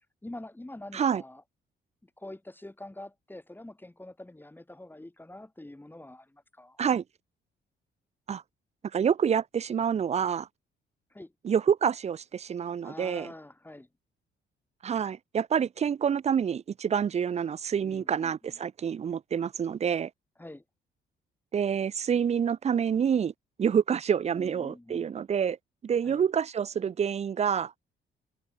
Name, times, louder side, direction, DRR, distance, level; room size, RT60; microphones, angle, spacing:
voice 1, 0.2-1.4 2.2-6.8 11.1-11.3 12.8-13.9 17.8-18.6 20.4-20.6 24.4-25.1 26.0-26.2, left 1 dB, 10° left, 3.3 m, -45 dB
voice 2, 8.9-10.5 11.4-13.3 14.8-20.1 21.5-23.3 23.6-25.6 25.8-27.7, right 7 dB, 35° right, 0.4 m, -27 dB
cardioid pair, 90°, 20 cm